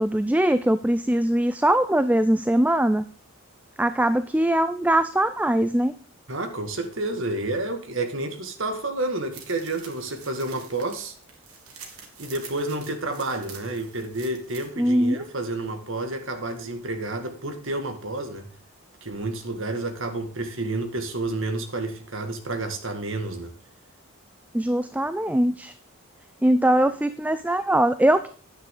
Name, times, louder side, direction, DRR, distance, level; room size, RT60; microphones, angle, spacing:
voice 1, 0.0-3.0 3.8-5.9 14.8-15.2 24.5-25.7 26.4-28.3, right 1 dB, 5° right, 0.4 m, -21 dB
voice 2, 6.3-11.1 12.2-18.5 19.0-23.5, right 2 dB, 60° right, 1.9 m, -30 dB
sound 1, 9.3-14.7, right 6 dB, 85° right, 2.8 m, -46 dB
10.0 x 9.4 x 3.8 m
head